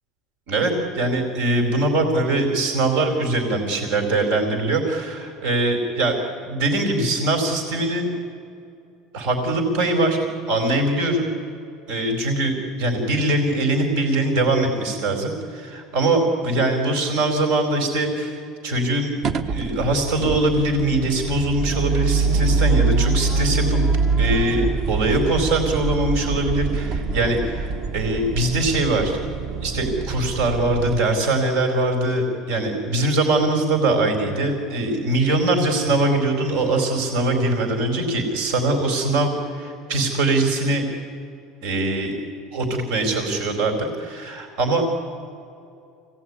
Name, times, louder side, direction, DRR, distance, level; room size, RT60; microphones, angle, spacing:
voice 1, 0.5-6.2 6.4-8.1 9.1-10.2 10.5-11.3 11.9-19.1 19.5-23.8 24.2-29.2 29.5-40.9 41.6-42.1 42.5-45.0, right 2 dB, 80° right, 3 dB, 4.3 m, -22 dB
sound 1, 19.2-31.0, right 4 dB, 40° right, 1.0 m, -24 dB
25.5 x 19.0 x 9.7 m, 2.5 s
cardioid pair, 150°, 0 cm